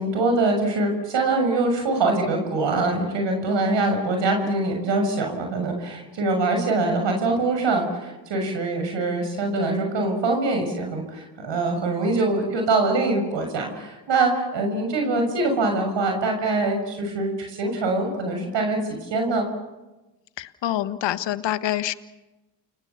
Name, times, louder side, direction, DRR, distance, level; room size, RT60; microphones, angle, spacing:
voice 1, 0.0-19.5, right 2 dB, 60° right, 4 dB, 6.8 m, -24 dB
voice 2, 20.4-21.9, left 12 dB, 60° left, 12 dB, 1.6 m, -27 dB
29.5 x 22.0 x 7.1 m, 1.1 s
hypercardioid pair, 55°, 49 cm